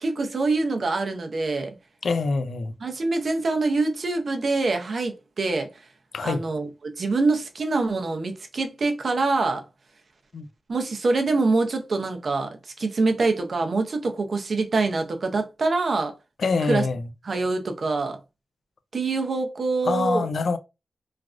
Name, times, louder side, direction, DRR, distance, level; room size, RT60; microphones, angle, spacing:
voice 1, 0.0-1.7 2.8-5.7 6.2-9.6 10.7-16.2 16.6-16.9 17.2-18.2 18.9-20.3, right 3 dB, 55° right, 0.5 m, -25 dB
voice 2, 2.0-2.7 6.1-6.4 10.3-10.5 16.4-17.0 19.9-20.6, left 4 dB, 75° left, 0.4 m, -25 dB
3.2 x 2.4 x 2.3 m
wide cardioid pair, 145°, 0 cm